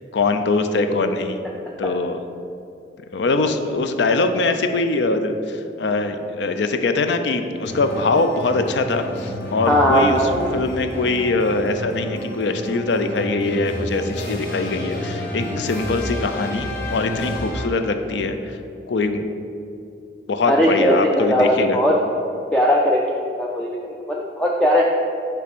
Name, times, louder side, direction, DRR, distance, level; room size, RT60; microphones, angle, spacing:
voice 1, 0.1-1.4 1.8-2.2 3.1-18.6 18.9-19.3 20.3-21.8, left 3 dB, 75° left, 8 dB, 0.4 m, -22 dB
sound 1, 7.6-18.0, left 1 dB, 50° left, 1.1 m, -30 dB
voice 2, 9.7-10.5 20.5-22.0 22.5-23.0 23.4-23.7 24.1-24.8, equal, 5° left, -3 dB, 0.3 m, -18 dB
5.9 x 3.4 x 5.9 m, 2.6 s
head